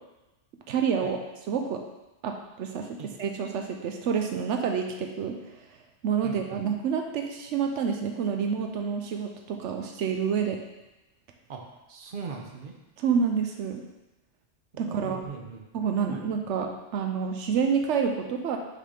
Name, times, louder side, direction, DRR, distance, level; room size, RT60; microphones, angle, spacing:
voice 1, 0.7-1.2 1.5-1.8 2.2-5.4 6.0-10.6 13.0-13.8 14.8-15.2 15.7-18.6, right 6 dB, 85° right, 4 dB, 0.9 m, -28 dB
voice 2, 6.2-6.6 11.5-11.6 11.9-12.8 14.7-15.6 16.1-16.2, right 5 dB, 50° right, 2 dB, 1.0 m, -40 dB
6.4 x 4.0 x 5.0 m, 1.0 s
omnidirectional pair, 1.2 m